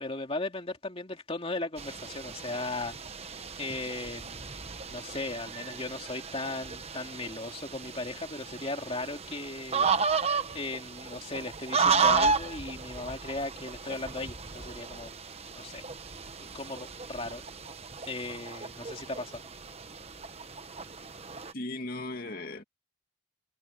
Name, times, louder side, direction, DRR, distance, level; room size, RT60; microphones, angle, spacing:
voice 1, 0.0-10.1 10.5-15.1 15.6-15.8 16.4-17.4 18.1-19.5, left 2 dB, 30° left, 2.6 m, -37 dB
sound 1, 1.8-21.5, right 5 dB, 30° right, 1.1 m, -33 dB
voice 2, 21.5-22.6, left 2 dB, 45° left, 2.5 m, -37 dB
head